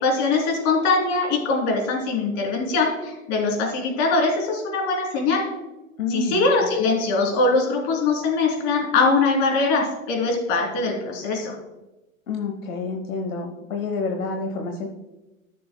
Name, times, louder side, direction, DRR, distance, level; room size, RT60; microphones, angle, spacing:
voice 1, 0.0-5.4 6.1-11.6, left 3 dB, 45° left, 1 dB, 3.2 m, -22 dB
voice 2, 6.0-6.5 12.3-14.9, left 3 dB, 85° left, 3 dB, 1.2 m, -28 dB
13.5 x 6.8 x 2.2 m, 1.0 s
hypercardioid pair, 120°, 40 cm